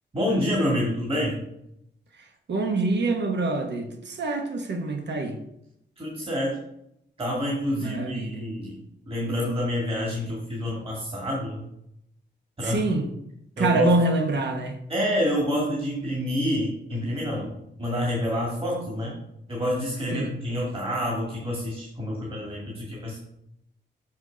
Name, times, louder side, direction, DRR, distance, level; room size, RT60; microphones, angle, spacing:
voice 1, 0.1-1.4 6.0-6.6 7.2-8.8 9.1-11.6 12.6-12.8 13.6-13.9 14.9-19.1 19.5-23.2, equal, 30° right, -4 dB, 2.1 m, -27 dB
voice 2, 2.2-5.4 7.8-8.4 12.6-13.1 13.6-14.8 20.1-20.3, right 2 dB, 70° right, 5 dB, 1.2 m, -26 dB
6.4 x 6.3 x 5.1 m, 0.79 s
wide cardioid pair, 150°, 19 cm